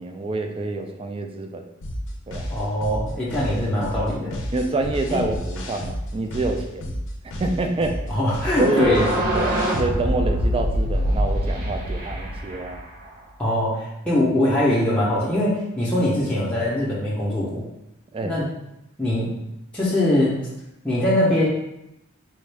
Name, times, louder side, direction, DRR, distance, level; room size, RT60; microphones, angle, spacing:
voice 1, 0.0-1.6 2.3-2.5 4.5-6.9 7.4-8.0 8.6-9.0 9.3-12.8 14.1-14.2 18.1-18.4, right 2 dB, 25° right, 5 dB, 0.3 m, -27 dB
sound 1, 1.8-9.8, equal, 60° left, 0.6 m, -31 dB
voice 2, 2.5-4.4 5.1-5.2 8.1-9.1 13.4-17.6 18.2-18.5 19.0-19.3 19.7-20.4 20.8-21.5, left 1 dB, 5° left, -8 dB, 0.6 m, -22 dB
sound 2, 8.4-13.2, equal, 45° right, 0.8 m, -24 dB
4.2 x 2.3 x 3.3 m, 0.88 s
head